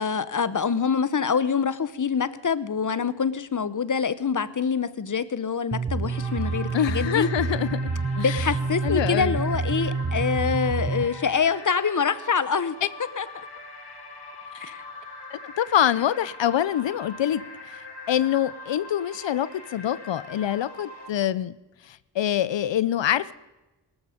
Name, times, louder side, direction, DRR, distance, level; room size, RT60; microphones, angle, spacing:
voice 1, 0.0-7.3 8.2-12.8 13.2-13.5 14.6-14.8, left 6 dB, 45° left, 16 dB, 0.9 m, -25 dB
sound 1, 5.7-11.0, right 3 dB, 30° right, 1.1 m, -28 dB
sound 2, 6.1-21.1, left 2 dB, 60° left, 2.8 m, -42 dB
voice 2, 6.7-7.8 8.2-8.5 8.8-9.4 12.8-12.9 14.5-14.6 15.3-17.4 18.1-21.5 21.8-23.3, left 11 dB, 80° left, 18 dB, 0.7 m, -25 dB
17.5 x 13.5 x 5.1 m, 1.0 s
cardioid pair, 65°, 44 cm